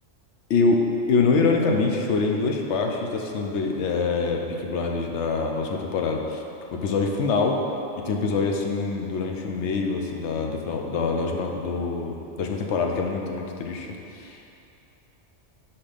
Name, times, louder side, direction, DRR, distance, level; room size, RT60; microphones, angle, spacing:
voice 1, 0.5-6.4 6.7-7.6 8.0-14.4, left 4 dB, 75° left, 2 dB, 0.9 m, -25 dB
5.7 x 4.3 x 5.0 m, 2.8 s
omnidirectional pair, 1.2 m